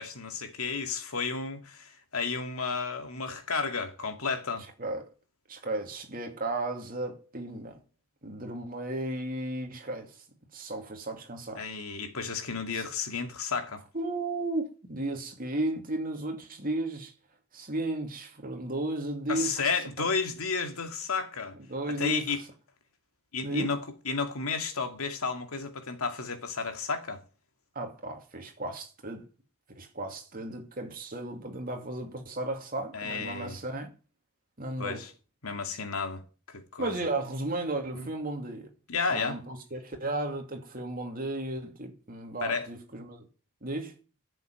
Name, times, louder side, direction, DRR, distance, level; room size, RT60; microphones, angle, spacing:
voice 1, 0.0-4.7 11.6-13.8 19.3-21.6 21.9-22.4 23.3-23.8 24.1-27.2 32.9-33.6 34.8-35.1 35.4-36.2 36.5-36.9 37.9-38.1 38.9-39.4 42.4-42.7, left 5 dB, 80° left, 2.2 m, -32 dB
voice 2, 4.8-5.1 5.5-7.8 8.2-10.2 10.5-11.6 12.7-12.9 13.9-17.1 17.5-19.5 20.0-20.1 21.7-22.4 23.4-23.7 27.7-29.3 29.7-33.9 34.6-35.1 36.8-38.7 39.1-43.3 43.6-44.0, right 2 dB, 40° right, 2.6 m, -34 dB
11.5 x 7.1 x 9.4 m
head